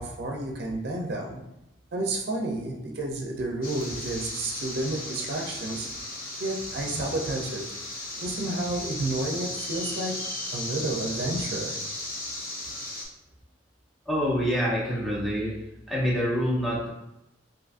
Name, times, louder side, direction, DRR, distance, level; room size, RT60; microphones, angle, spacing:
voice 1, 0.0-1.4 1.9-5.9 6.4-7.6 8.2-10.1 10.5-11.8, right 2 dB, 60° right, 0 dB, 0.5 m, -31 dB
sound 1, 3.6-13.0, left 1 dB, 50° left, 0.7 m, -35 dB
voice 2, 14.1-15.6 15.9-16.9, equal, ahead, -6 dB, 0.8 m, -26 dB
3.7 x 2.6 x 2.5 m, 0.88 s
head